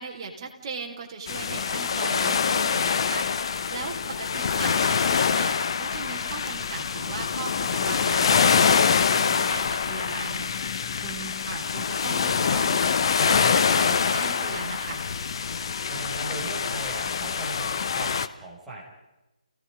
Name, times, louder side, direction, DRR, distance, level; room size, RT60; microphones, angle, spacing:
voice 1, 0.0-12.8 13.2-15.1, right 4 dB, 30° right, 1 dB, 4.0 m, -38 dB
sound 1, 1.3-18.3, left 6 dB, 40° left, 1.0 m, -25 dB
voice 2, 15.9-18.8, right 2 dB, ahead, -8 dB, 6.1 m, -38 dB
29.5 x 18.0 x 5.2 m, 1.0 s
figure-of-eight pair, 145°, 4 cm